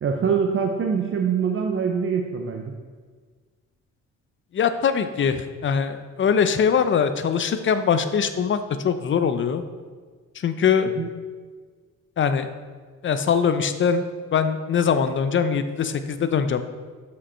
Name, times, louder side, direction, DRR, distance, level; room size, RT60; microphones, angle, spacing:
voice 1, 0.0-2.7 11.0-11.1, right 6 dB, 45° right, 2 dB, 0.7 m, -24 dB
voice 2, 4.5-8.6 8.8-9.6 10.4-10.9 12.2-12.5 13.0-14.0 14.3-16.6, left 7 dB, 40° left, 10 dB, 0.5 m, -22 dB
6.8 x 5.2 x 4.3 m, 1.5 s
cardioid pair, 90°, 30 cm